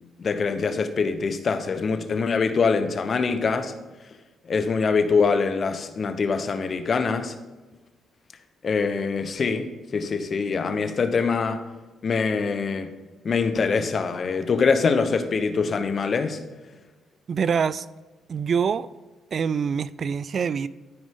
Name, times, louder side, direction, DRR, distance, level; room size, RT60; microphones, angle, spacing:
voice 1, 0.2-3.7 4.4-7.3 8.6-11.6 12.0-12.9 13.2-16.4, left 5 dB, 45° left, 0.9 m, -24 dB
voice 2, 17.3-17.9 18.3-18.9 19.3-20.7, right 6 dB, 50° right, 0.3 m, -25 dB
13.0 x 5.2 x 3.6 m
cardioid pair, 90°, 0 cm